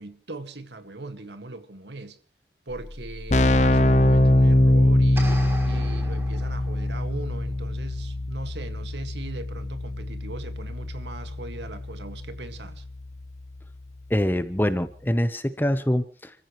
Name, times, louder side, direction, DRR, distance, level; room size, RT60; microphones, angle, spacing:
voice 1, 0.0-2.2 2.7-5.3 5.6-12.9, right 2 dB, 85° right, 2.0 m, -39 dB
Keyboard (musical), 2.7-2.8 3.0-13.6, left 1 dB, 40° left, 0.8 m, -23 dB
sound 1, 5.1-7.1, right 1 dB, 15° right, 5.2 m, -39 dB
voice 2, 14.1-16.3, equal, 10° left, 0.9 m, -24 dB
30.0 x 15.0 x 3.2 m
head